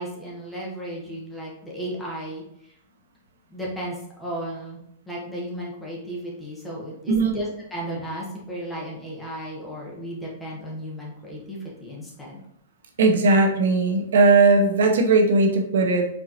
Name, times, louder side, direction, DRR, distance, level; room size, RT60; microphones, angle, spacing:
voice 1, 0.0-2.8 3.5-4.8 5.1-12.4, equal, 5° left, -4 dB, 0.8 m, -34 dB
voice 2, 13.0-16.1, right 3 dB, 75° right, 3 dB, 0.7 m, -18 dB
4.5 x 3.9 x 2.8 m, 0.77 s
supercardioid pair, 175°, 0 cm